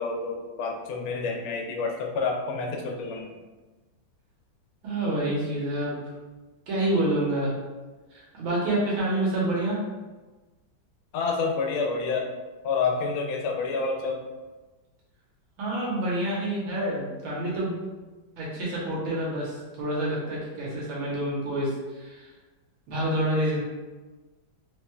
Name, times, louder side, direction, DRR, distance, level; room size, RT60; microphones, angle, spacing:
voice 1, 0.0-3.3 11.1-12.3 12.6-14.2, left 4 dB, 85° left, 2 dB, 1.4 m, -28 dB
voice 2, 4.8-6.0 6.7-7.5 8.1-9.8 15.6-17.8 18.4-21.7 22.0-22.3 22.9-23.6, right 1 dB, 85° right, -5 dB, 1.8 m, -27 dB
3.8 x 3.1 x 2.2 m, 1.2 s
omnidirectional pair, 2.2 m